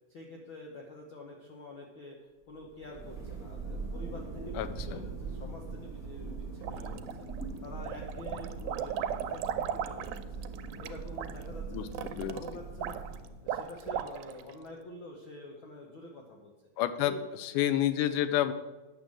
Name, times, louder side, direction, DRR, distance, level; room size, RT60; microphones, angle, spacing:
voice 1, 0.1-2.2 2.5-7.0 7.6-9.4 9.7-10.2 10.8-13.0 13.4-16.5 17.0-17.3, left 2 dB, 60° left, 0 dB, 1.4 m, -47 dB
Thunder, 2.6-13.6, right 4 dB, ahead, 2.2 m, -41 dB
voice 2, 4.6-5.0 11.7-11.9 12.2-12.4 16.8-17.1 17.4-18.5, left 12 dB, 90° left, 11 dB, 2.2 m, -29 dB
sound 1, 6.6-7.4 7.8-14.5, right 9 dB, 85° right, 2.1 m, -36 dB
9.2 x 6.8 x 7.5 m, 1.2 s
omnidirectional pair, 3.5 m